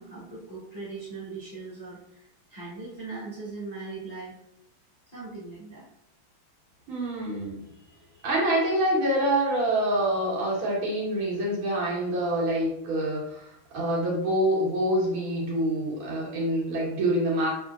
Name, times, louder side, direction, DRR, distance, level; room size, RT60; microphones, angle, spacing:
voice 1, 0.0-2.2 2.5-4.4 5.1-5.8, right 3 dB, 20° left, -9 dB, 1.2 m, -39 dB
voice 2, 6.9-7.7 8.2-17.5, right 1 dB, 85° right, -6 dB, 2.1 m, -26 dB
4.2 x 2.7 x 2.4 m, 0.78 s
omnidirectional pair, 2.3 m